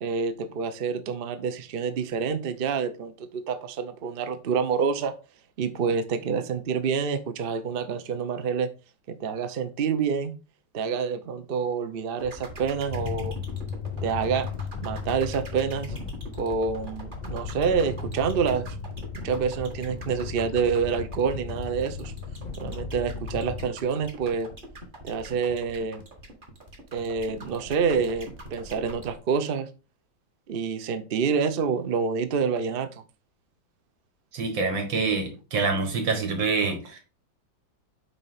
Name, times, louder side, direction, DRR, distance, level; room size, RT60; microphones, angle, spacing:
voice 1, 0.0-5.1 5.6-8.7 9.1-10.3 10.7-13.4 14.0-14.5 14.8-15.9 16.3-18.7 19.2-22.1 22.6-24.5 25.0-26.0 26.9-29.7 30.5-33.0, right 6 dB, 60° right, 9 dB, 0.6 m, -27 dB
sound 1, 12.2-29.2, right 1 dB, 30° right, 1.6 m, -43 dB
sound 2, 12.9-23.7, left 5 dB, 45° left, 0.5 m, -36 dB
voice 2, 34.3-37.0, right 4 dB, 80° right, 5 dB, 2.4 m, -26 dB
8.2 x 2.9 x 5.7 m, 0.32 s
omnidirectional pair, 2.0 m